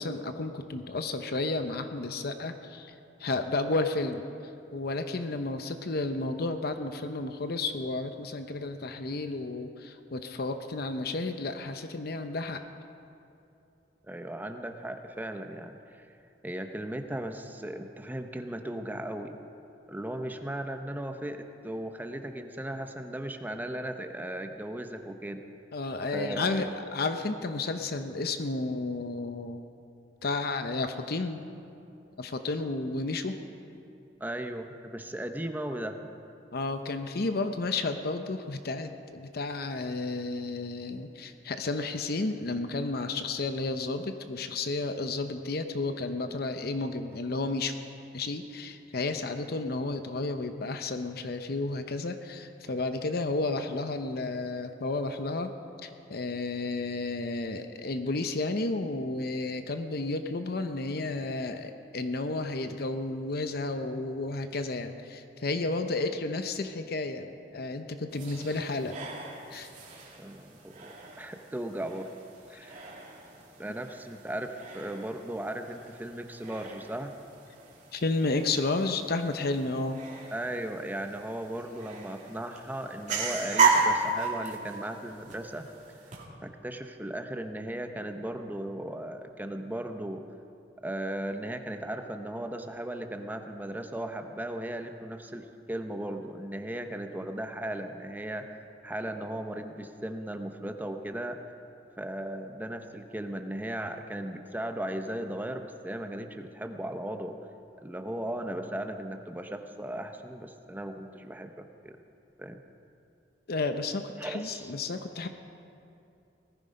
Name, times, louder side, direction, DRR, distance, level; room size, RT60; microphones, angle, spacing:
voice 1, 0.0-2.9 3.2-4.2 4.7-12.6 25.7-29.6 30.2-31.4 32.2-33.4 36.5-47.7 48.1-55.5 55.8-69.0 69.5-69.7 77.9-80.0 113.5-115.3, left 3 dB, 60° left, 8 dB, 0.8 m, -32 dB
voice 2, 14.1-16.1 16.4-19.4 19.9-25.4 26.1-26.7 34.2-36.0 70.2-72.1 72.5-72.9 73.6-77.1 80.3-85.7 86.4-90.2 90.8-101.4 102.0-107.4 107.8-112.0 112.4-112.6 114.2-114.7, right 1 dB, 10° right, 6 dB, 0.7 m, -37 dB
sound 1, 68.1-86.2, right 4 dB, 45° right, 2.6 m, -34 dB
19.0 x 14.0 x 5.3 m, 2.7 s
head